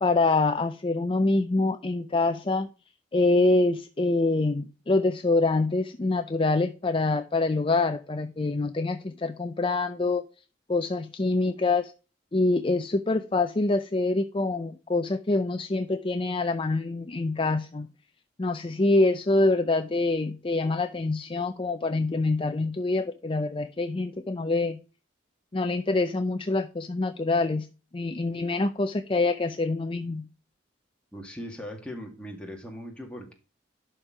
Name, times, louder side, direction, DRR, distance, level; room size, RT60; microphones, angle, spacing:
voice 1, 0.0-2.7 3.1-10.2 10.7-11.9 12.3-17.9 18.4-24.8 25.5-27.7 27.9-30.3, left 3 dB, 30° left, 8 dB, 0.5 m, -25 dB
voice 2, 31.1-33.3, equal, 5° left, 1 dB, 2.0 m, -39 dB
11.5 x 4.4 x 4.8 m, 0.34 s
head